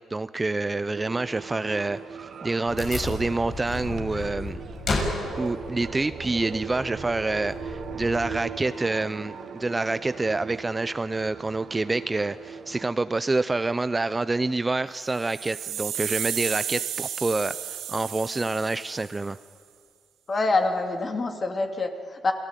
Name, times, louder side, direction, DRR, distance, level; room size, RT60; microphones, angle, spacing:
voice 1, 0.1-4.6 5.4-19.4, right 3 dB, 20° right, 14 dB, 0.6 m, -27 dB
sound 1, 0.9-12.9, right 6 dB, 55° right, 1.9 m, -40 dB
Wood, 2.7-8.4, left 2 dB, 55° left, 7.3 m, -33 dB
sound 2, 15.1-19.3, right 10 dB, 85° right, 4.2 m, -33 dB
voice 2, 20.3-22.3, left 3 dB, 35° left, 5 dB, 2.8 m, -26 dB
28.0 x 18.0 x 9.2 m, 2.1 s
cardioid pair, 90°, 0 cm